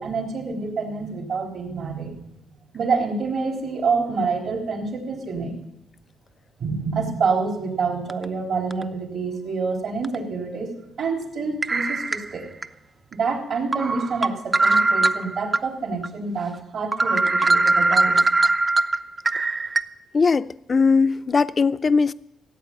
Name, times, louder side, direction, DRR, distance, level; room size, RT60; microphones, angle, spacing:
voice 1, 0.0-2.2 2.7-5.6 6.6-12.5 13.1-18.2, right 4 dB, 65° right, 3.7 m, -27 dB
sound 1, 8.1-8.2 8.7-8.8 10.0-10.2 11.6-12.7 13.1-13.2 13.7-15.6 16.0-16.1 16.5-16.6 16.9-19.8, right 3 dB, 30° right, 0.6 m, -21 dB
voice 2, 20.1-22.1, left 4 dB, 35° left, 0.5 m, -19 dB
16.0 x 8.4 x 8.7 m
cardioid pair, 90°, 0 cm